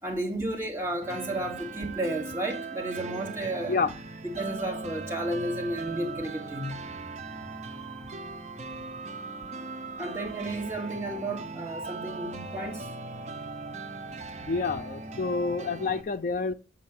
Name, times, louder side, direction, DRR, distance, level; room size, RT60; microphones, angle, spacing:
voice 1, 0.0-3.8 4.2-6.8 10.0-12.9, right 1 dB, 15° right, 2.1 m, -32 dB
sound 1, 1.0-16.0, right 3 dB, 35° right, 0.8 m, -39 dB
voice 2, 14.5-16.5, left 4 dB, 45° left, 0.4 m, -28 dB
8.6 x 5.3 x 7.5 m
head